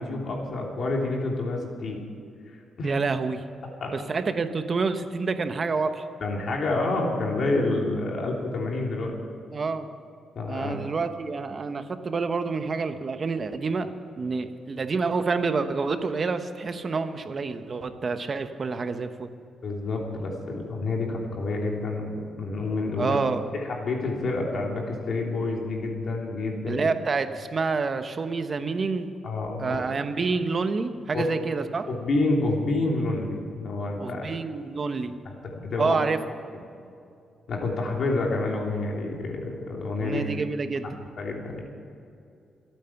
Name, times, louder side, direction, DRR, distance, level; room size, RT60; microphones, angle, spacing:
voice 1, 0.0-2.0 2.8-2.9 3.8-3.9 6.2-9.1 10.3-10.8 19.6-23.2 23.5-26.9 29.2-29.8 31.1-31.2 31.9-34.3 35.6-36.0 37.5-40.2 41.2-41.6, left 2 dB, 55° left, -1 dB, 3.0 m, -28 dB
voice 2, 2.8-3.4 3.9-6.0 9.5-9.9 10.5-13.9 14.2-19.3 23.0-23.4 26.7-29.1 29.6-31.9 34.0-35.2 35.8-36.2 40.0-40.9, right 4 dB, 35° right, 9 dB, 1.0 m, -28 dB
26.0 x 9.2 x 5.9 m, 2.5 s
cardioid pair, 145°, 0 cm